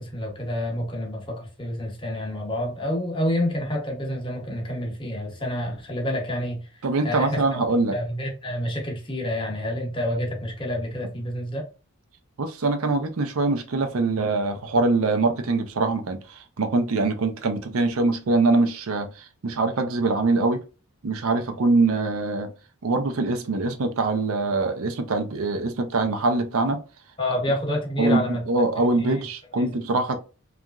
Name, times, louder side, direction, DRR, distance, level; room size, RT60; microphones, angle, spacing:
voice 1, 0.0-6.6 7.0-7.6 7.9-11.6 27.2-28.4 28.8-29.3, left 1 dB, 20° left, 0.8 m, -28 dB
voice 2, 6.8-7.9 12.4-16.2 16.6-19.1 19.4-20.6 21.0-22.5 22.8-26.8 28.0-30.2, right 3 dB, 70° right, 0.5 m, -23 dB
2.9 x 2.4 x 2.3 m
head